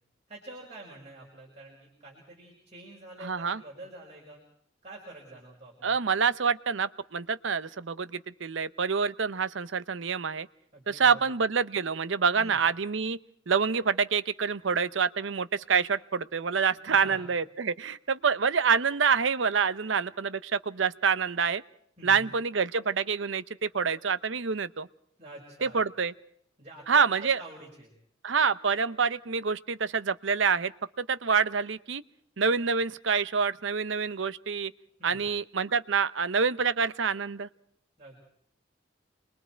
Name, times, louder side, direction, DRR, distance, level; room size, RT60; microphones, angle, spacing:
voice 1, 0.3-4.4 4.8-6.0 10.7-11.3 12.3-12.6 16.7-17.4 22.0-22.4 25.2-25.8 26.6-27.9 35.0-35.2 38.0-38.3, right 1 dB, 35° right, -2 dB, 5.4 m, -47 dB
voice 2, 3.2-3.6 5.8-10.5 10.9-13.2 13.5-21.6 22.0-24.9 25.6-26.1 26.9-27.4 28.2-30.7 31.0-32.0 32.4-34.7 35.0-37.5, right 5 dB, 75° right, 14 dB, 0.8 m, -27 dB
28.5 x 22.0 x 4.6 m, 0.66 s
head